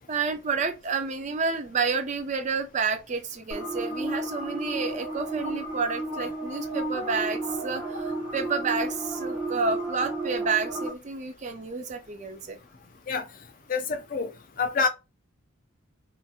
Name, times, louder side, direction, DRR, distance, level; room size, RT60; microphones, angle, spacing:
voice 1, 0.1-12.6, right 5 dB, 35° right, 0.4 m, -30 dB
sound 1, 3.5-10.9, right 2 dB, 15° right, 0.8 m, -32 dB
voice 2, 13.7-14.3 14.6-14.9, left 5 dB, 40° left, 0.4 m, -26 dB
2.8 x 2.4 x 2.3 m
head